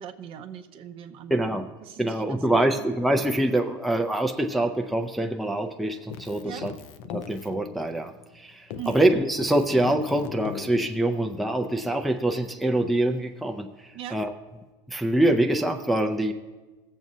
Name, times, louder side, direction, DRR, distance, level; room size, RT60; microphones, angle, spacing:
voice 1, 0.0-1.4 1.8-2.6 6.4-6.7 8.8-9.0 13.9-14.2, right 9 dB, 50° right, 7 dB, 0.6 m, -40 dB
voice 2, 1.3-1.7 2.0-6.7 7.1-14.3 14.9-16.3, right 1 dB, ahead, 2 dB, 0.5 m, -25 dB
Keyboard (musical), 6.1-8.4 8.7-11.5, left 8 dB, 75° left, 0.5 m, -40 dB
16.5 x 7.4 x 2.7 m, 1.2 s
supercardioid pair, 115°, 12 cm